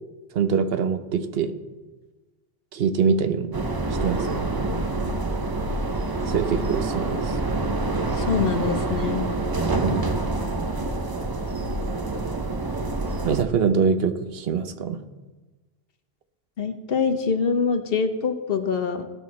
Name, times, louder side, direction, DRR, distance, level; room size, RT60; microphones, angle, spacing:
voice 1, 0.3-1.5 2.7-3.6 3.9-4.5 6.2-7.3 9.8-10.2 13.2-15.0, right 6 dB, 70° right, 9 dB, 1.0 m, -24 dB
sound 1, 3.5-13.4, right 2 dB, 25° right, 0.6 m, -26 dB
voice 2, 8.1-9.3 16.6-19.1, left 5 dB, 65° left, 8 dB, 1.1 m, -25 dB
17.0 x 6.2 x 4.2 m, 1.2 s
omnidirectional pair, 1.1 m